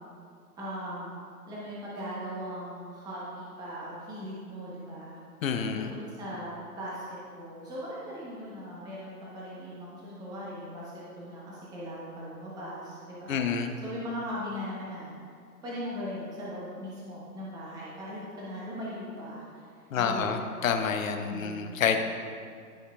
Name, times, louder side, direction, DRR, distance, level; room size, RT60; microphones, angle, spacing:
voice 1, 0.6-1.1 1.5-5.2 5.7-13.4 13.8-15.1 15.6-19.7 19.9-20.4 21.1-21.8, equal, 10° right, -6 dB, 0.9 m, -39 dB
voice 2, 5.4-5.9 13.3-13.7 19.9-22.0, left 7 dB, 60° left, 6 dB, 0.8 m, -28 dB
13.5 x 5.4 x 2.4 m, 2.2 s
hypercardioid pair, 140°, 46 cm